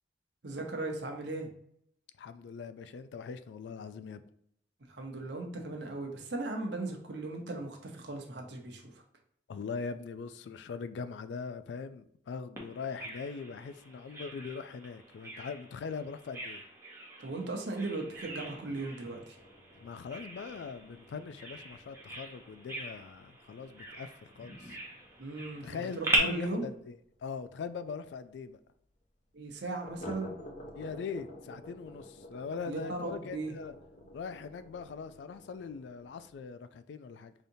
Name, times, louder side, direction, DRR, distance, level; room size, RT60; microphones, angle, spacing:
voice 1, 0.4-1.5 4.9-8.8 17.2-19.4 25.2-25.7 25.9-26.7 29.3-30.3 32.6-33.5, right 2 dB, 70° right, 0.8 m, -37 dB
voice 2, 2.2-4.2 9.5-16.6 19.8-24.8 25.6-28.6 30.8-33.8 34.1-37.3, left 5 dB, 75° left, 0.3 m, -41 dB
Bird vocalization bird call bird song, 12.6-26.2, right 2 dB, 15° right, 0.7 m, -40 dB
sound 1, 18.1-27.3 27.6-27.7 28.1-28.2 28.5-28.6 29.8-36.5, left 1 dB, 40° left, 0.7 m, -51 dB
4.9 x 2.8 x 2.7 m
head